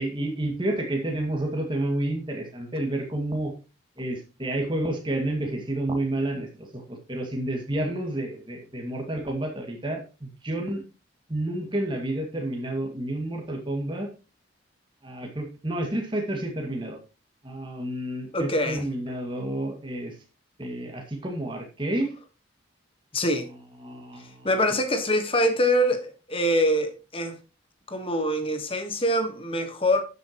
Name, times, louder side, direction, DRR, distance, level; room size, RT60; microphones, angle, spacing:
voice 1, 0.0-3.5 4.0-10.8 11.3-14.1 15.0-17.0 17.4-20.1 20.6-22.1 23.8-24.5, right 1 dB, 25° right, 2.2 m, -30 dB
voice 2, 18.3-18.9 23.1-23.5 24.4-27.4 27.9-30.0, equal, 25° left, 1.4 m, -24 dB
12.0 x 8.2 x 3.1 m
head